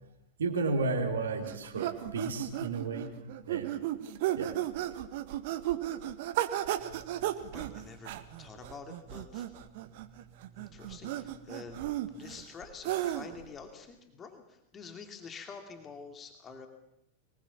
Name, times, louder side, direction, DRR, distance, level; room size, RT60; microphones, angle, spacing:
voice 1, 0.4-3.1 3.5-3.8 4.3-4.5, right 3 dB, 65° right, 2 dB, 3.0 m, -32 dB
sound 1, 1.4-13.5, right 13 dB, 50° right, 1.6 m, -34 dB
voice 2, 6.8-16.7, left 4 dB, 25° left, 5 dB, 2.5 m, -48 dB
25.0 x 20.5 x 7.2 m, 0.83 s
figure-of-eight pair, 90°, 0 cm